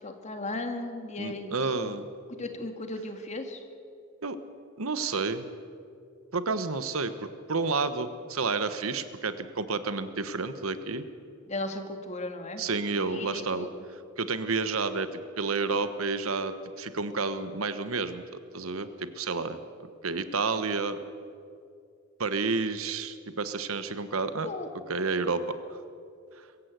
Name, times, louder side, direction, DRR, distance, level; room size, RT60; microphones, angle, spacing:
voice 1, 0.0-1.9 2.3-3.6 11.5-12.6 13.0-13.8 24.4-24.7, left 2 dB, 35° left, 6 dB, 1.8 m, -36 dB
voice 2, 1.2-2.1 4.2-4.4 4.8-5.5 6.3-11.0 12.6-13.7 14.2-15.1 15.4-18.2 18.5-19.6 20.0-21.0 22.2-24.5 24.9-25.4, right 4 dB, 85° right, 11 dB, 1.2 m, -30 dB
23.0 x 15.0 x 8.2 m, 2.4 s
head